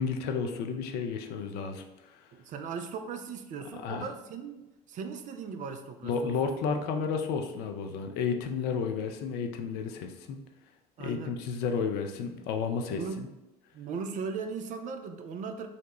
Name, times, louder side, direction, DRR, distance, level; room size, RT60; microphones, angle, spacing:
voice 1, 0.0-2.3 3.8-4.1 6.0-10.4 11.0-13.3, left 5 dB, 55° left, 5 dB, 0.4 m, -32 dB
voice 2, 2.3-6.4 11.0-11.4 12.8-13.3 13.7-15.7, right 5 dB, 40° right, 7 dB, 0.4 m, -38 dB
3.9 x 2.1 x 2.8 m, 0.96 s
figure-of-eight pair, 60°, 20 cm